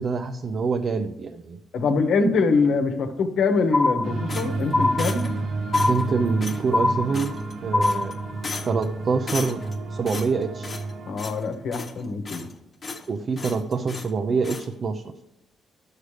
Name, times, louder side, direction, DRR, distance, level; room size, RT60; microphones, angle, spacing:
voice 1, 0.0-1.6 5.9-7.3 7.6-8.1 8.6-9.6 9.9-10.8 13.1-15.1, right 4 dB, 50° right, 7 dB, 0.5 m, -26 dB
voice 2, 1.7-5.3 11.0-12.5, left 4 dB, 70° left, 6 dB, 1.0 m, -23 dB
sound 1, 3.7-4.4 4.7-5.4 5.7-6.4 6.7-7.4 7.7-8.4, left 2 dB, 20° left, 0.3 m, -23 dB
sound 2, 4.0-11.1, right 3 dB, 65° right, 1.0 m, -31 dB
sound 3, 4.3-5.4 5.7-6.1 6.4-6.6 7.1-7.5 7.8-8.1 8.4-8.9 9.3-9.8 10.1-10.9 11.2-11.4 11.7-12.5 12.8-13.1 13.4-14.1 14.4-14.7, left 4 dB, 35° left, 1.1 m, -36 dB
12.0 x 6.5 x 3.3 m, 0.89 s
cardioid pair, 90°, 0 cm